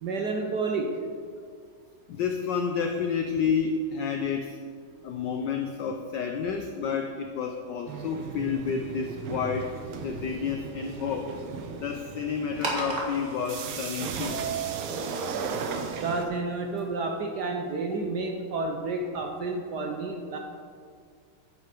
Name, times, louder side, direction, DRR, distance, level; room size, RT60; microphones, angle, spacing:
voice 1, 0.0-0.9 16.0-20.4, right 3 dB, 60° right, 2 dB, 1.1 m, -30 dB
voice 2, 2.1-4.6 5.0-9.7 10.0-11.3 11.8-14.4, left 6 dB, 70° left, 4 dB, 1.1 m, -30 dB
sound 1, 7.9-16.3, right 6 dB, 80° right, 1.7 m, -35 dB
sound 2, 12.5-18.5, right 2 dB, 35° right, 1.8 m, -39 dB
9.6 x 8.2 x 5.0 m, 2.1 s
omnidirectional pair, 2.4 m